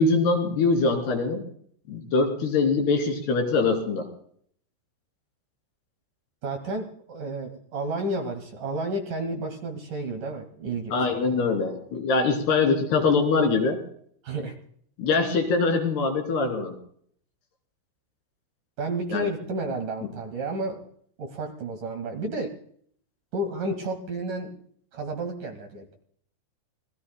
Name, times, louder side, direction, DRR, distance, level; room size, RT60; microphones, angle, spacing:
voice 1, 0.0-1.4 1.9-4.1 10.9-13.8 15.0-16.8 19.1-19.3, left 4 dB, 60° left, 4 dB, 4.9 m, -23 dB
voice 2, 6.4-11.2 14.2-14.5 18.8-20.8 21.2-22.5 23.3-24.5 24.9-26.0, right 2 dB, 55° right, 4 dB, 2.9 m, -31 dB
27.0 x 20.5 x 2.2 m, 0.62 s
omnidirectional pair, 5.4 m